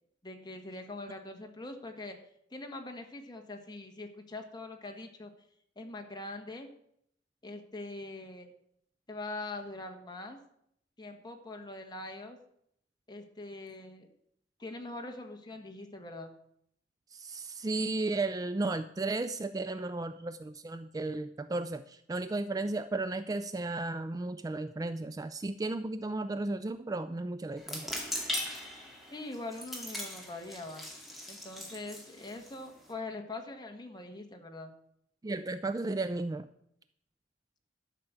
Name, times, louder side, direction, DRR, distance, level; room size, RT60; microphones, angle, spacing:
voice 1, 0.2-2.2 2.5-5.3 5.7-6.7 7.4-8.5 9.1-10.4 11.0-12.4 13.1-14.1 14.6-16.3 29.1-30.8 31.3-34.7, left 2 dB, 25° left, 3 dB, 1.4 m, -43 dB
voice 2, 17.1-27.9 35.2-36.5, right 2 dB, 20° right, 12 dB, 0.3 m, -34 dB
sound 1, 27.6-32.9, left 1 dB, ahead, 2.2 m, -40 dB
12.0 x 5.9 x 8.1 m, 0.72 s
head